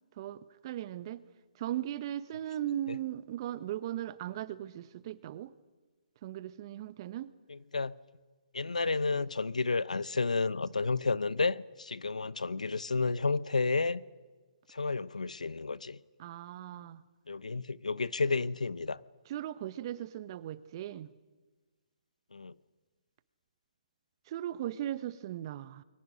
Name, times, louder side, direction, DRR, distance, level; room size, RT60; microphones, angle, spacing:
voice 1, 0.2-1.2 1.6-5.5 6.2-7.3 16.2-17.0 19.3-21.1 24.3-25.8, right 12 dB, 40° right, 1.1 m, -38 dB
voice 2, 7.5-7.9 8.5-14.0 14.7-16.0 17.3-19.0 22.3-22.5, left 4 dB, 90° left, 0.9 m, -31 dB
29.5 x 23.0 x 6.4 m
hypercardioid pair, 145°, 4 cm